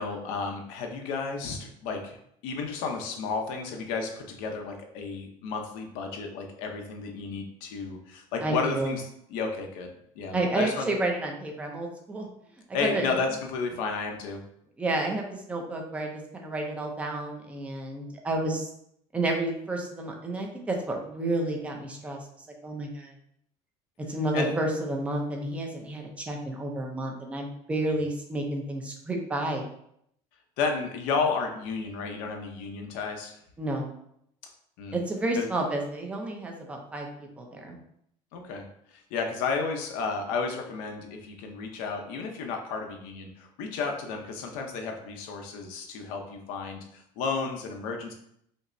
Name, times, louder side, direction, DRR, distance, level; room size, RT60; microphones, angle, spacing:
voice 1, 0.0-2.2 2.4-9.9 10.2-10.9 12.7-14.4 24.3-24.5 30.6-33.4 34.8-35.0 35.4-35.5 38.3-38.7 38.9-48.1, left 4 dB, 75° left, 3 dB, 0.7 m, -32 dB
voice 2, 8.4-8.9 10.3-12.3 12.8-13.1 14.8-18.7 19.1-22.2 22.6-23.1 24.1-29.6 33.6-33.9 34.9-37.1 37.4-37.8, right 2 dB, 10° right, 1 dB, 0.4 m, -30 dB
5.2 x 2.0 x 2.5 m, 0.72 s
cardioid pair, 175°, 14 cm